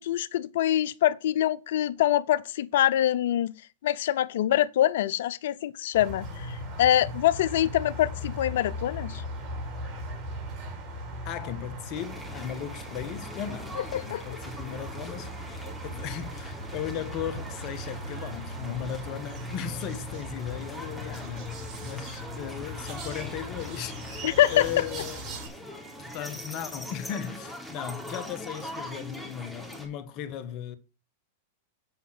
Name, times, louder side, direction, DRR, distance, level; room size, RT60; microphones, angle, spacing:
voice 1, 0.0-3.5 3.8-9.2 13.8-14.2 24.2-24.8, left 12 dB, 70° left, 0.5 m, -25 dB
sound 1, 5.9-25.5, equal, 40° right, 5.2 m, -38 dB
voice 2, 11.2-25.2 26.0-30.8, left 9 dB, 45° left, 1.3 m, -37 dB
sound 2, 11.9-29.9, equal, ahead, 3.5 m, -43 dB
8.7 x 5.5 x 5.9 m
hypercardioid pair, 110°, 0 cm